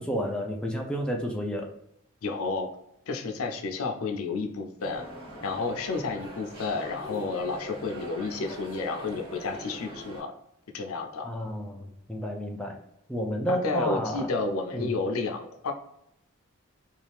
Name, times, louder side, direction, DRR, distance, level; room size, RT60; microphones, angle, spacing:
voice 1, 0.0-1.7 11.2-12.8 13.1-14.3 14.7-14.9, equal, 5° left, 0 dB, 0.4 m, -31 dB
voice 2, 2.2-2.7 3.1-5.0 5.4-10.3 10.7-11.3 13.5-15.7, left 3 dB, 80° left, 4 dB, 0.5 m, -31 dB
sound 1, 4.8-10.2, equal, 25° right, 1.0 m, -42 dB
2.8 x 2.4 x 3.3 m, 0.79 s
head